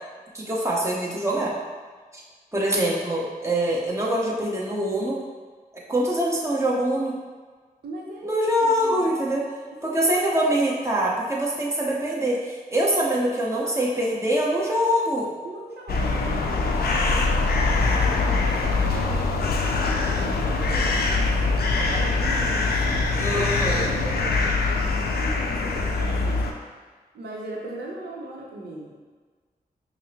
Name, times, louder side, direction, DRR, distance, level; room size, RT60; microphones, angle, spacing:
voice 1, 0.3-1.6 2.1-2.2 2.5-5.2 5.9-7.2 8.2-9.4 9.8-15.3 23.2-23.9, right 1 dB, 15° right, -5 dB, 1.0 m, -24 dB
voice 2, 7.8-9.4 9.8-10.5 13.5-14.0 15.4-21.1 21.5-26.4 27.1-29.0, right 2 dB, 85° right, -2 dB, 0.7 m, -38 dB
sound 1, 15.9-26.5, left 3 dB, 70° left, 0.4 m, -23 dB
5.3 x 2.1 x 2.8 m, 1.5 s
cardioid pair, 40°, 16 cm